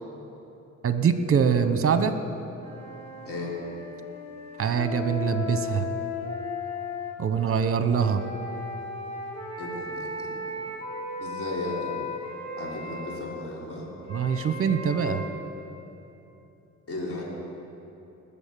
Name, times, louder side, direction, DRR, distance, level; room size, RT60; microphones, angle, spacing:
voice 1, 0.8-2.2 4.6-5.9 7.2-8.2 14.1-15.2, right 6 dB, 45° right, 10 dB, 1.0 m, -24 dB
sound 1, 2.6-7.1 7.9-13.2 14.0-15.3, left 3 dB, 20° left, 3.3 m, -36 dB
voice 2, 9.6-10.3 11.2-11.9 12.6-13.9 16.9-17.2, left 2 dB, 50° left, -4 dB, 3.5 m, -35 dB
20.5 x 7.1 x 6.9 m, 2.9 s
cardioid pair, 90°, 30 cm